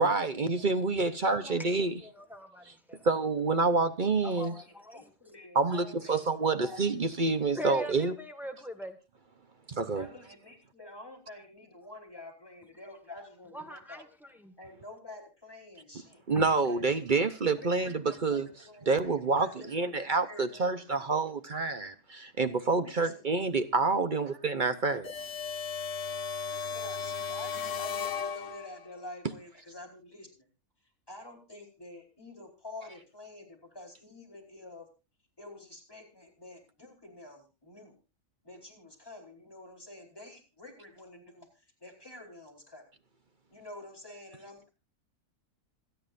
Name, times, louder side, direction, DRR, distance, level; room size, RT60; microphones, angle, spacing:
voice 1, 0.0-1.9 3.0-4.5 5.5-8.1 9.7-10.1 16.3-18.5 18.9-25.0, right 3 dB, 40° right, 0.9 m, -28 dB
voice 2, 0.6-1.2 4.4-7.0 7.7-8.2 9.9-14.1 14.6-16.2 16.7-16.9 17.5-21.1 22.8-23.2 26.7-30.5 31.1-34.9 35.4-38.0 38.4-42.9 43.5-44.7, left 2 dB, 15° left, 4.4 m, -49 dB
voice 3, 1.3-3.1 4.2-5.1 7.5-9.0 13.5-14.5 16.3-16.5, equal, ahead, 1.7 m, -42 dB
sound 1, 25.0-28.9, left 6 dB, 65° left, 1.5 m, -35 dB
26.5 x 9.3 x 2.6 m
omnidirectional pair, 1.4 m